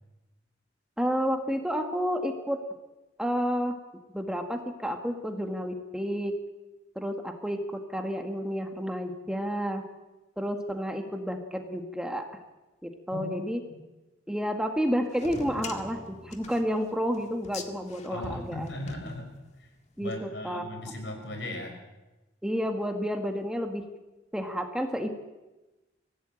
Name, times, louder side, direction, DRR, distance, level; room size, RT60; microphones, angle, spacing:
voice 1, 1.0-2.6 3.2-3.8 4.1-6.4 6.9-9.8 10.4-12.3 12.8-13.6 14.3-18.7 20.0-20.6 22.4-23.8 24.3-25.1, equal, 5° right, 4 dB, 1.7 m, -30 dB
voice 2, 13.1-13.4 13.7-13.8 18.1-19.3 19.6-19.7 20.0-21.8, left 1 dB, 70° left, 5 dB, 5.4 m, -37 dB
sound 1, 15.1-19.7, left 3 dB, 40° left, 1.9 m, -43 dB
24.0 x 16.0 x 8.9 m, 1.1 s
head